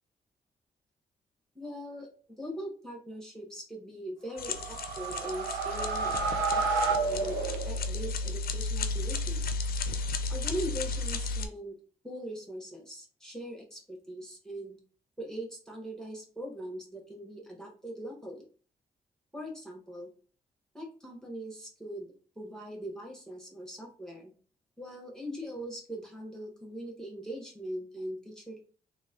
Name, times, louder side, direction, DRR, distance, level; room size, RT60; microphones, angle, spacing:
voice 1, 1.5-2.1 2.4-6.1 6.5-7.4 7.7-9.5 10.3-11.8 12.0-14.8 15.2-18.5 19.3-20.1 20.7-24.3 24.8-28.6, equal, 5° left, 0 dB, 1.1 m, -41 dB
sound 1, 4.3-8.1, right 4 dB, 90° right, 0.5 m, -31 dB
sound 2, 4.4-11.5, left 3 dB, 60° left, 0.5 m, -34 dB
3.0 x 2.6 x 2.5 m, 0.39 s
supercardioid pair, 50°, 18 cm